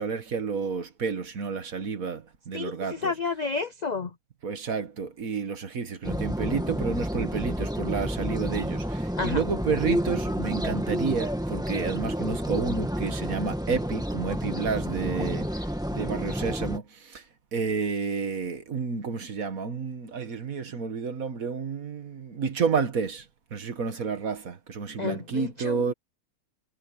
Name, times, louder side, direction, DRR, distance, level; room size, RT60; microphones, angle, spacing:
voice 1, 0.0-3.1 4.4-15.5 15.9-17.2 17.5-23.2 23.5-25.9, right 5 dB, 60° right, 2.0 m, -30 dB
voice 2, 2.5-4.1 9.2-9.4 25.0-25.8, left 4 dB, 70° left, 0.4 m, -31 dB
sound 1, 6.0-16.8, equal, ahead, 1.7 m, -30 dB
omnidirectional pair, 1.7 m